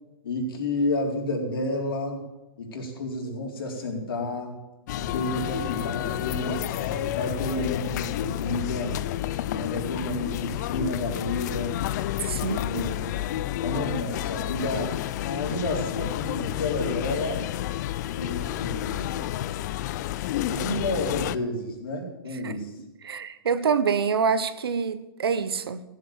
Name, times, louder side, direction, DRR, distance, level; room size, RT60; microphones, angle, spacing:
voice 1, 0.2-2.3 2.6-4.5 4.9-6.9 7.1-9.0 9.5-11.8 12.4-14.9 15.2-17.5 18.1-19.2 20.5-22.7, left 2 dB, 70° left, 4.2 m, -31 dB
sound 1, 4.9-21.4, left 13 dB, 45° left, 0.6 m, -30 dB
sound 2, 6.9-10.9 11.4-11.5, left 3 dB, 15° right, 1.6 m, -46 dB
voice 2, 12.2-12.9 22.4-22.6 23.0-25.8, right 6 dB, 80° right, 1.2 m, -26 dB
15.0 x 8.0 x 7.3 m
hypercardioid pair, 140°, 13 cm